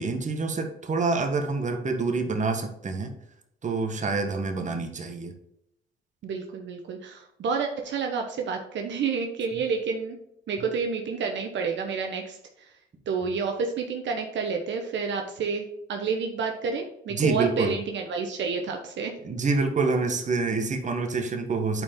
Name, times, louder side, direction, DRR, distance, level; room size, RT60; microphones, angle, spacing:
voice 1, 0.0-3.1 3.6-5.3 17.1-17.8 19.2-21.8, right 4 dB, 40° right, 5 dB, 1.4 m, -27 dB
voice 2, 6.2-10.2 10.5-12.7 13.1-19.1, right 5 dB, 65° right, 3 dB, 1.1 m, -29 dB
8.5 x 4.6 x 3.7 m, 0.79 s
cardioid pair, 90°, 20 cm